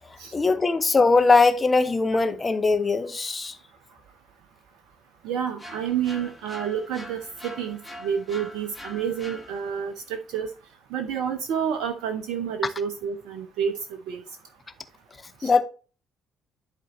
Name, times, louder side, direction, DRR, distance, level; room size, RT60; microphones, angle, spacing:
voice 1, 0.3-3.6 15.4-15.6, left 3 dB, 25° left, 0.8 m, -20 dB
voice 2, 5.2-10.5 10.9-13.8 14.1-14.2 15.4-15.5, right 8 dB, 60° right, 0.6 m, -29 dB
sound 1, 5.6-9.9, left 1 dB, 5° left, 1.7 m, -43 dB
11.0 x 4.3 x 3.0 m
figure-of-eight pair, 45°, 0 cm